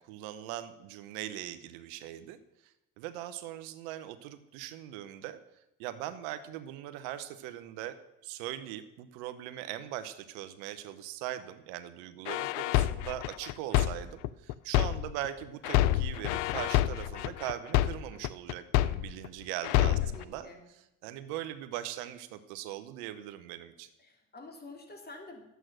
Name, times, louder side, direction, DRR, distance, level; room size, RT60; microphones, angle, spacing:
voice 1, 0.0-2.4 2.6-5.4 5.8-8.0 8.2-20.5 21.0-23.9, right 12 dB, 85° right, 11 dB, 0.9 m, -40 dB
sound 1, 12.3-15.3 15.6-19.3 19.6-20.2, left 14 dB, 85° left, 0.5 m, -27 dB
voice 2, 20.0-20.6 24.0-25.4, left 3 dB, 25° left, 1 dB, 3.5 m, -48 dB
11.0 x 7.9 x 6.3 m, 0.89 s
supercardioid pair, 75°, 36 cm